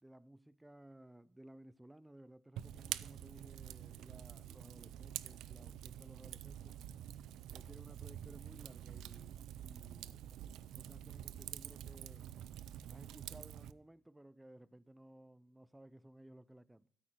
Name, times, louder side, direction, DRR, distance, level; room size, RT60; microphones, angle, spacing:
voice 1, 0.0-6.8 7.5-12.3 12.9-16.9, right 1 dB, 10° right, 0.3 m, -58 dB
Fire, 2.6-13.7, right 11 dB, 85° right, 0.3 m, -47 dB
8.9 x 8.7 x 4.4 m
cardioid pair, 90°, 0 cm